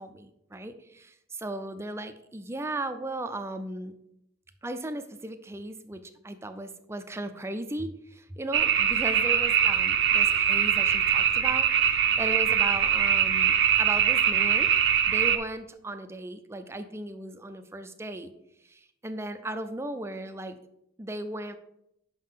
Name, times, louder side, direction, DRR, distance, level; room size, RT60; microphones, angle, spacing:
voice 1, 0.0-3.9 4.6-14.7 15.1-18.3 18.6-20.6 21.0-21.6, right 1 dB, 15° right, 9 dB, 0.4 m, -36 dB
sound 1, 8.5-15.4, right 8 dB, 65° right, 0.6 m, -23 dB
5.8 x 3.7 x 5.6 m, 0.79 s
head